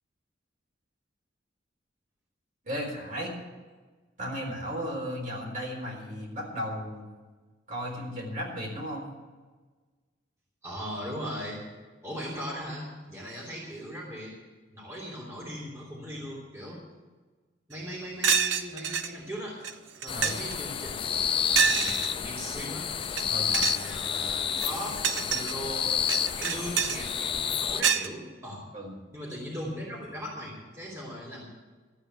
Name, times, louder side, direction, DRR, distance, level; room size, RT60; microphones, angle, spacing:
voice 1, 2.6-3.3 4.2-7.1 7.7-9.1 20.1-20.4 23.3-23.5 28.7-28.9, equal, 45° right, -1 dB, 4.0 m, -35 dB
voice 2, 10.6-11.6 12.0-14.3 14.7-16.8 17.7-19.6 20.0-22.9 23.5-28.6 29.1-31.5, equal, 15° right, -5 dB, 3.0 m, -39 dB
sound 1, 17.7-17.8 18.2-19.1 19.6-19.7 20.0-20.5 21.6-22.1 23.0-23.2 23.5-23.8 24.5-25.5 26.1-27.0 27.8-28.1, right 6 dB, 80° right, 0.8 m, -26 dB
sound 2, 20.1-27.8, left 8 dB, 30° left, 0.4 m, -30 dB
13.5 x 8.8 x 7.8 m, 1.3 s
head